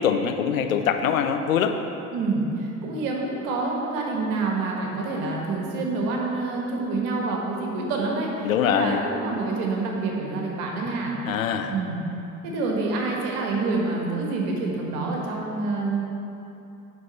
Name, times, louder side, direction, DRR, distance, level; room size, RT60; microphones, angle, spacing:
voice 1, 0.0-1.7 8.4-9.0 11.3-11.7, left 8 dB, 85° left, 7 dB, 0.5 m, -23 dB
voice 2, 2.1-11.2 11.7-12.0 12.4-16.0, right 3 dB, 65° right, -1 dB, 1.5 m, -27 dB
9.5 x 4.0 x 5.7 m, 2.9 s
figure-of-eight pair, 50°, 40 cm